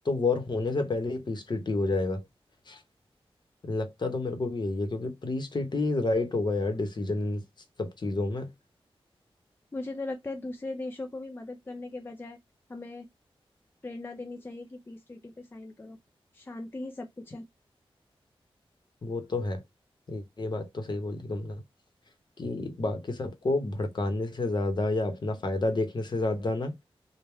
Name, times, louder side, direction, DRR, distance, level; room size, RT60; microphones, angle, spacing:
voice 1, 0.0-2.2 2.7-2.8 3.6-7.4 7.8-8.5 19.0-19.6 20.1-21.6 22.4-26.8, left 2 dB, 50° left, 0.8 m, -29 dB
voice 2, 9.7-12.4 12.7-13.1 13.8-16.0 16.3-17.4, left 2 dB, 20° left, 0.4 m, -39 dB
3.4 x 2.2 x 4.3 m
wide cardioid pair, 125°, 10 cm